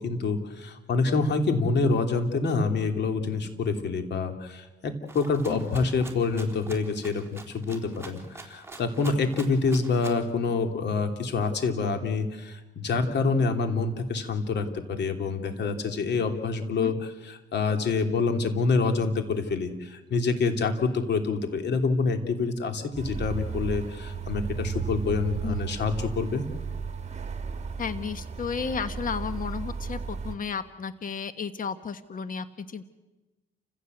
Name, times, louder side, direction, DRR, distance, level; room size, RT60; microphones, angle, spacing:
voice 1, 0.0-26.4, left 4 dB, 60° left, 6 dB, 3.0 m, -27 dB
Rattle (instrument), 5.1-10.3, right 3 dB, 10° right, 3.7 m, -45 dB
sound 1, 22.9-30.3, right 6 dB, 35° right, 2.2 m, -34 dB
voice 2, 27.8-32.8, left 6 dB, 45° left, 11 dB, 1.3 m, -33 dB
29.5 x 16.0 x 8.0 m, 1.1 s
cardioid pair, 90°, 20 cm